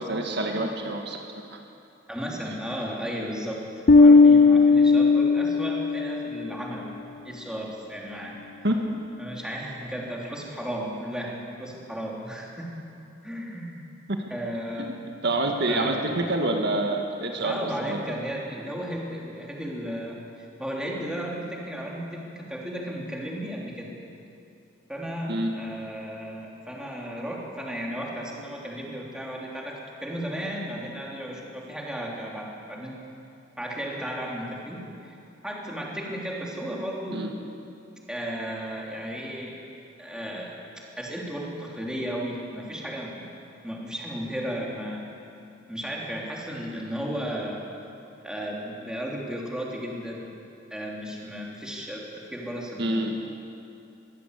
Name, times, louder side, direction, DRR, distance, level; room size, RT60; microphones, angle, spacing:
voice 1, 0.0-1.6 8.6-8.8 14.9-15.0 15.2-17.6 17.9-18.2 25.3-25.5 37.1-37.3 52.8-53.1, right 2 dB, 60° right, 3 dB, 1.8 m, -27 dB
voice 2, 2.1-3.7 3.9-6.9 7.2-8.4 9.2-12.7 13.2-13.8 14.3-15.1 15.7-16.0 17.3-23.9 24.9-33.0 33.6-35.2 35.4-37.3 38.1-39.6 40.0-40.6 41.0-43.3 43.6-45.1 45.7-47.6 48.2-50.3 50.7-53.2, equal, 5° right, -3 dB, 3.3 m, -34 dB
Bass guitar, 3.9-6.3, left 4 dB, 45° left, 0.5 m, -16 dB
23.0 x 15.5 x 8.3 m, 2.7 s
head